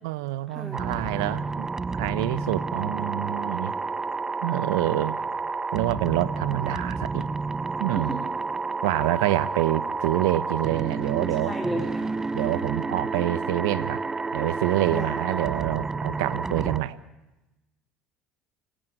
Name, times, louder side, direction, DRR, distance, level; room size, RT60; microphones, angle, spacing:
voice 1, 0.0-1.7 2.0-3.7 4.4-5.2 5.7-7.3 7.8-8.2 8.8-11.5 12.3-14.0 14.3-17.0, right 15 dB, 75° right, 17 dB, 1.0 m, -26 dB
sound 1, 0.7-16.8, right 4 dB, 25° right, 0.7 m, -30 dB
voice 2, 11.0-12.0 14.9-15.1 15.4-15.5, equal, 5° right, 2 dB, 3.5 m, -33 dB
28.5 x 14.5 x 9.3 m, 1.0 s
hypercardioid pair, 65°, 2 cm